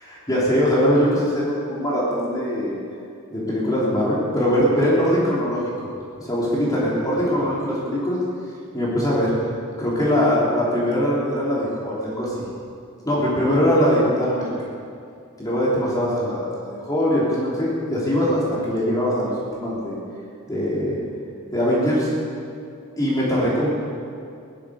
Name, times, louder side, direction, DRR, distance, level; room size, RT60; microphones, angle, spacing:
voice 1, 0.0-2.7 3.3-5.6 6.2-8.2 8.7-9.3 9.8-12.4 13.0-14.5 15.4-20.0 20.5-21.0 21.5-22.1 23.0-23.7, equal, 20° left, -7 dB, 3.4 m, -21 dB
17.0 x 12.5 x 6.6 m, 2.4 s
head